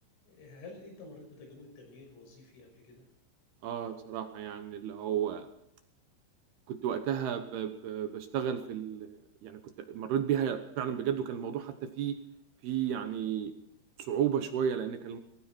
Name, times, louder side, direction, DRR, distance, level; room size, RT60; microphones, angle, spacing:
voice 1, 0.3-3.1, left 3 dB, 90° left, 1 dB, 8.7 m, -50 dB
voice 2, 3.6-5.5 6.7-9.6 9.9-12.2 12.6-13.5 14.0-15.2, right 9 dB, 70° right, 8 dB, 2.6 m, -33 dB
19.0 x 16.5 x 4.4 m, 0.77 s
omnidirectional pair, 5.4 m